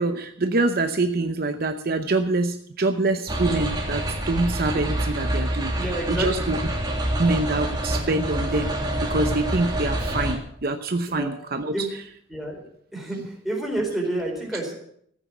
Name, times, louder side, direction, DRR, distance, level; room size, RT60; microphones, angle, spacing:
voice 1, 0.0-6.6 7.2-11.7, right 2 dB, 50° right, 7 dB, 0.8 m, -25 dB
sound 1, 3.3-10.4, right 1 dB, 20° right, 2.7 m, -27 dB
voice 2, 5.7-6.5 9.1-9.2 11.1-11.3 11.7-11.9 12.3-12.6 12.9-14.7, right 1 dB, ahead, -1 dB, 4.2 m, -29 dB
15.0 x 9.1 x 7.2 m, 0.67 s
head